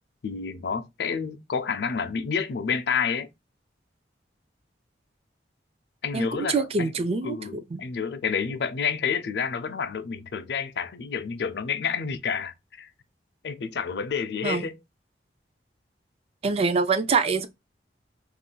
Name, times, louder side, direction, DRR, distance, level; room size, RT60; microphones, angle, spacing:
voice 1, 0.2-3.3 6.0-6.9 7.2-12.9 13.4-14.8, left 6 dB, 65° left, 0.4 m, -29 dB
voice 2, 6.1-7.4 7.7-7.8 14.4-14.7 16.4-17.5, right 4 dB, 35° right, 0.3 m, -25 dB
2.5 x 2.3 x 3.7 m
head